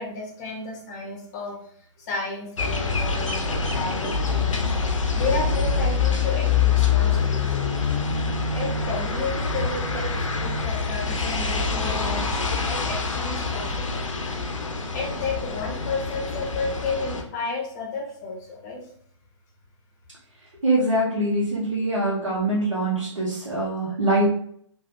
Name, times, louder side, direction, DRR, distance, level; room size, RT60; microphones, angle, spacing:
voice 1, 0.0-4.8 5.1-7.4 8.5-14.0 14.9-18.9, left 3 dB, 35° left, 0 dB, 0.6 m, -32 dB
sound 1, 2.6-17.2, left 5 dB, 80° left, 0.6 m, -25 dB
voice 2, 20.6-24.2, right 1 dB, 80° right, -7 dB, 1.0 m, -23 dB
3.2 x 2.3 x 2.8 m, 0.65 s
figure-of-eight pair, 125°, 16 cm